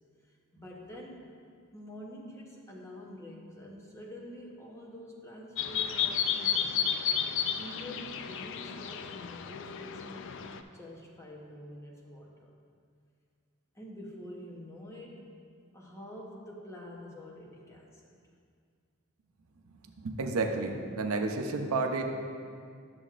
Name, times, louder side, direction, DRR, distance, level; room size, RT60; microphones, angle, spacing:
voice 1, 0.5-1.3 1.7-6.8 7.5-10.4 10.7-12.5 13.7-15.3 15.7-18.0, left 1 dB, 15° left, -2 dB, 0.8 m, -46 dB
sound 1, 5.6-10.6, left 8 dB, 60° left, 0.3 m, -32 dB
voice 2, 20.0-22.0, right 3 dB, 80° right, 4 dB, 0.6 m, -31 dB
10.0 x 6.8 x 2.4 m, 2.2 s
head